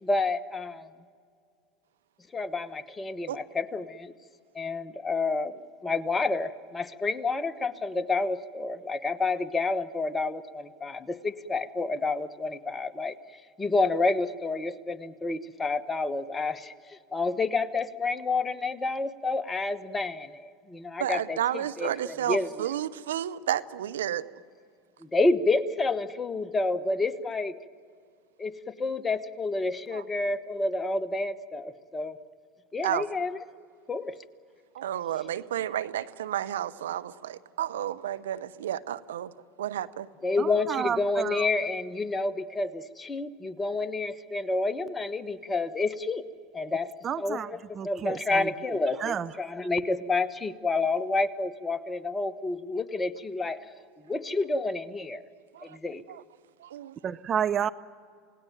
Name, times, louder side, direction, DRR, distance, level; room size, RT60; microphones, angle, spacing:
voice 1, 0.0-0.9 2.3-4.1 4.5-13.2 13.6-21.4 21.8-22.7 25.0-27.6 28.4-32.2 32.7-33.4 33.9-34.1 40.2-46.2 46.5-46.9 47.2-53.6 54.0-55.2 55.6-56.0, left 3 dB, 20° left, 11 dB, 1.2 m, -29 dB
voice 2, 21.0-24.2 29.9-30.0 32.8-33.0 34.7-39.3 39.6-40.1 55.5-55.8 56.1-56.2 56.6-57.0, right 11 dB, 80° right, 14 dB, 0.7 m, -31 dB
voice 3, 40.4-41.5 47.0-47.5 47.8-48.5 49.0-49.3 57.0-57.7, right 8 dB, 35° right, 14 dB, 0.6 m, -30 dB
28.0 x 18.5 x 9.3 m, 2.2 s
hypercardioid pair, 80°, 0 cm